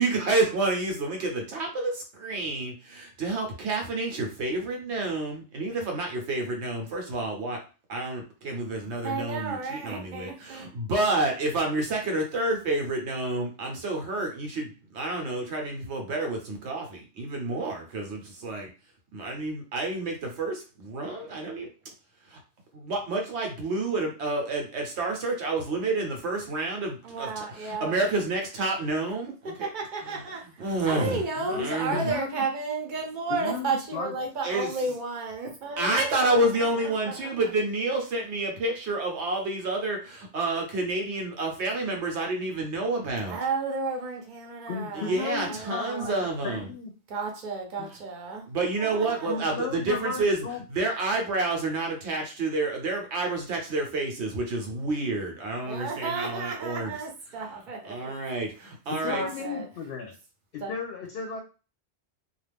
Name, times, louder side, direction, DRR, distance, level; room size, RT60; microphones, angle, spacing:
voice 1, 0.0-7.6 7.9-18.7 19.1-21.7 22.3-22.4 22.7-29.7 30.1-30.2 30.6-31.2 31.5-32.1 34.4-34.9 35.8-43.4 44.9-46.7 47.9-48.0 48.5-50.4 50.7-56.9 57.9-59.2, right 2 dB, 70° right, 2 dB, 1.1 m, -29 dB
voice 2, 9.0-10.7 27.0-28.0 29.4-36.4 36.8-37.3 43.3-46.2 47.1-48.5 48.8-49.4 55.6-58.1 59.1-59.7 60.6-60.7, right 3 dB, 45° right, 1 dB, 0.9 m, -33 dB
voice 3, 31.4-32.5 33.3-34.1 44.7-46.9 47.8-48.0 49.3-50.6 58.9-60.1 60.5-61.4, left 5 dB, 65° left, 3 dB, 0.7 m, -35 dB
2.4 x 2.4 x 3.3 m, 0.34 s
omnidirectional pair, 1.2 m